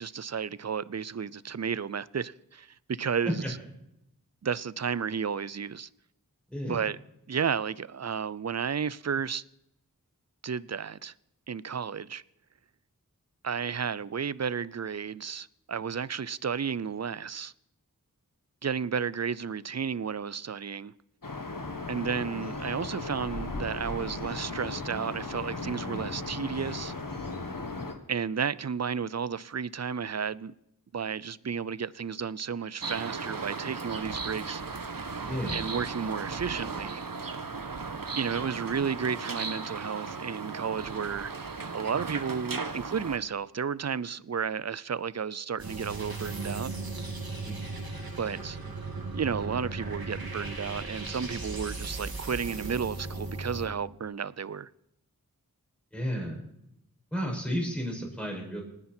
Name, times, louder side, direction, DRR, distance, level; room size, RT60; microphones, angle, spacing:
voice 1, 0.0-3.4 4.4-5.9 6.6-7.0 7.3-9.4 10.4-11.1 11.5-12.2 13.4-17.5 18.6-20.9 21.9-26.9 28.1-30.5 30.9-34.6 35.5-37.0 38.1-41.3 41.7-46.7 48.2-48.6 49.1-54.7, right 6 dB, 50° right, 0.5 m, -32 dB
voice 2, 6.5-6.8 35.3-35.6 47.4-47.7 55.9-56.5 57.1-58.6, equal, 5° left, 6.2 m, -32 dB
sound 1, 21.2-27.9, left 3 dB, 70° left, 1.8 m, -36 dB
sound 2, 32.8-43.2, right 4 dB, 75° right, 1.2 m, -36 dB
sound 3, 45.6-53.7, right 2 dB, 90° right, 2.4 m, -37 dB
28.5 x 9.8 x 4.4 m
wide cardioid pair, 50°, 35 cm